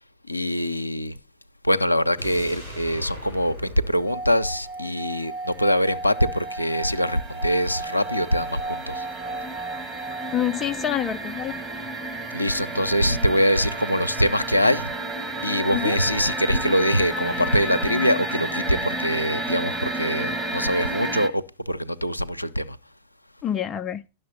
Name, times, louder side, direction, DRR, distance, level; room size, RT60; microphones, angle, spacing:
voice 1, 0.3-1.2 1.6-9.1 12.3-14.9 15.4-22.8, equal, 85° left, 0.4 m, -23 dB
sound 1, 2.2-5.3 5.6-5.7, left 1 dB, 90° right, 3.3 m, -40 dB
Singing / Glass, 4.0-10.6, right 3 dB, 65° right, 2.6 m, -35 dB
sound 2, 4.6-4.7 5.0-21.3, right 1 dB, 15° right, 1.3 m, -32 dB
voice 2, 10.3-11.6 15.7-15.9 23.4-24.0, left 10 dB, 25° left, 0.4 m, -27 dB
11.0 x 6.4 x 4.2 m
figure-of-eight pair, 90°, 0 cm